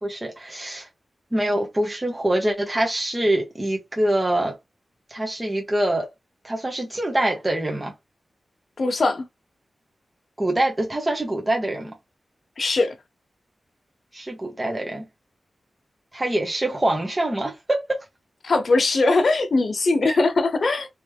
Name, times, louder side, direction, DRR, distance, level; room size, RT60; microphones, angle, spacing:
voice 1, 0.0-0.9 1.3-4.5 5.1-6.0 6.4-7.9 10.4-11.9 14.1-15.1 16.1-17.8 20.0-20.2, right 1 dB, 20° right, 1.4 m, -24 dB
voice 2, 8.8-9.3 12.6-13.0 18.4-20.9, left 3 dB, 65° left, 0.9 m, -20 dB
3.2 x 3.1 x 3.5 m
cardioid pair, 65°, 0 cm